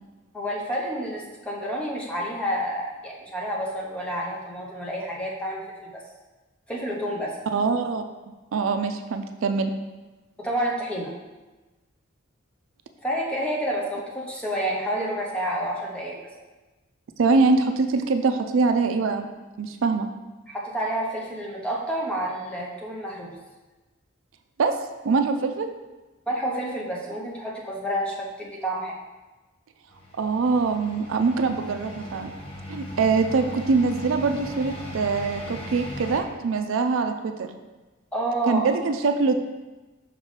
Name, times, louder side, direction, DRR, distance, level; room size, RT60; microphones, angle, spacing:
voice 1, 0.3-6.0 6.7-7.4 10.4-11.1 13.0-16.2 20.5-23.3 26.3-29.0 38.1-38.7, right 1 dB, 5° left, -3 dB, 0.8 m, -29 dB
voice 2, 7.5-8.0 8.5-9.7 17.2-19.3 19.6-20.1 24.6-24.8 25.0-25.7 30.2-32.3 32.7-37.5 38.5-39.4, right 4 dB, 70° right, 7 dB, 0.4 m, -23 dB
sound 1, 29.9-36.2, left 1 dB, 25° left, 1.2 m, -38 dB
5.8 x 5.2 x 3.2 m, 1.2 s
head